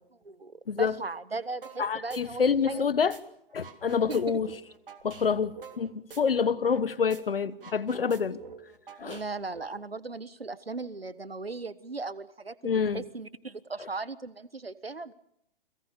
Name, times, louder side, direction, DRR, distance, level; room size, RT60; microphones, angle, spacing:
voice 1, 0.2-2.9 4.1-4.4 9.0-15.1, right 3 dB, 90° right, 1.5 m, -38 dB
sound 1, 1.6-1.8 2.1-3.2 3.5-6.8 7.1-7.2 7.5-9.6, right 6 dB, 65° right, 3.1 m, -47 dB
voice 2, 1.8-3.2 3.5-4.5 5.0-8.4 9.0-9.2 12.6-13.0, left 6 dB, 75° left, 1.5 m, -27 dB
30.0 x 22.0 x 6.8 m
figure-of-eight pair, 120°, 29 cm